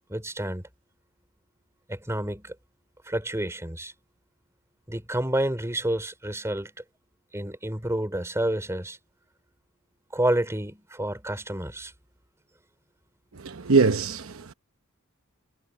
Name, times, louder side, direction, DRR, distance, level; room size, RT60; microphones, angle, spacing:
voice 1, 0.1-0.6 1.9-2.5 3.0-3.9 4.9-6.7 7.3-9.0 10.1-11.9, right 1 dB, 15° right, 3.4 m, -29 dB
voice 2, 13.3-14.5, right 4 dB, 70° right, 0.9 m, -23 dB
head